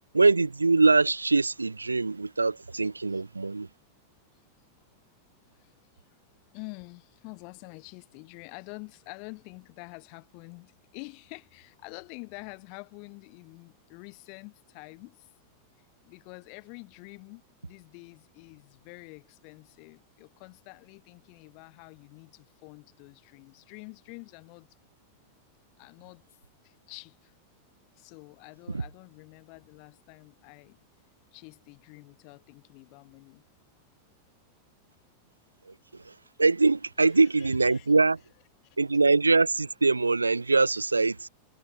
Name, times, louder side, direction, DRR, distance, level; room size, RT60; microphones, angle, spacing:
voice 1, 0.1-3.7 28.7-28.8 35.7-36.1 36.4-38.2 38.8-41.3, right 3 dB, 80° right, 0.7 m, -23 dB
voice 2, 6.5-15.3 15.8-24.7 25.8-26.2 26.6-27.3 28.0-30.8 31.3-33.4 37.0-37.9 38.6-38.8, left 39 dB, 45° left, 3.2 m, -47 dB
figure-of-eight pair, 90°, 0 cm